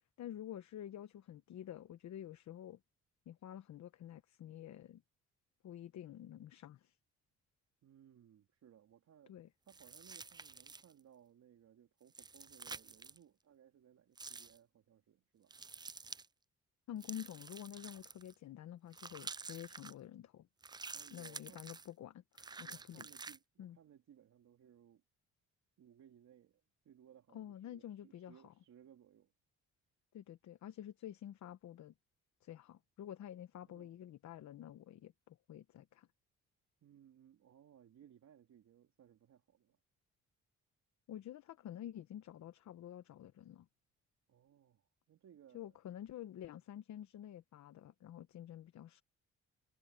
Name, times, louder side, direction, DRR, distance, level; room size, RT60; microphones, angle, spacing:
voice 1, 0.2-2.8 3.3-5.0 5.6-7.0 9.3-9.5 16.9-20.5 21.1-23.1 23.6-23.8 27.3-28.5 30.1-31.9 32.4-36.1 41.1-43.7 45.5-49.0, left 11 dB, 65° left, 1.1 m, -49 dB
voice 2, 7.8-9.3 9.7-15.6 20.9-21.6 22.6-25.0 25.8-29.3 33.7-33.9 36.8-39.8 44.3-45.8, right 9 dB, 65° right, 3.7 m, -63 dB
sound 1, 9.7-11.0 12.1-13.2 14.2-14.6 15.5-16.3 17.0-18.3 18.9-19.9 20.6-21.9 22.4-23.4, right 4 dB, 15° right, 0.4 m, -50 dB
cardioid pair, 90°, 30 cm